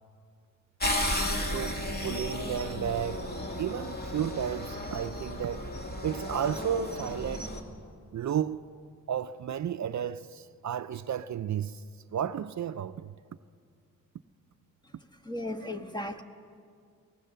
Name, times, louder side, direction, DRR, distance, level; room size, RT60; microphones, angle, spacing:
sound 1, 0.8-7.6, left 1 dB, 30° left, 2.4 m, -34 dB
voice 1, 1.5-3.3 3.6-5.7 6.0-7.5 8.1-8.6 9.1-11.8 12.1-13.1, right 9 dB, 60° right, 0.5 m, -33 dB
voice 2, 14.8-16.2, left 1 dB, 15° left, 1.4 m, -37 dB
22.5 x 19.0 x 6.8 m
cardioid pair, 85°, 33 cm